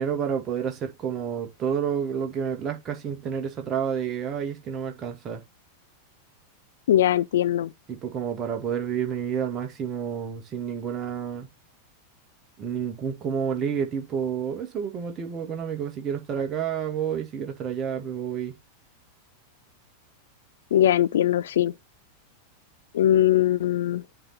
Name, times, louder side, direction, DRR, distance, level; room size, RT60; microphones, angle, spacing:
voice 1, 0.0-5.4 7.9-11.5 12.6-18.6, right 7 dB, 30° right, 2.2 m, -29 dB
voice 2, 6.9-7.7 20.7-21.7 22.9-24.0, left 12 dB, 60° left, 0.4 m, -21 dB
10.0 x 3.8 x 4.3 m
figure-of-eight pair, 90°, 0 cm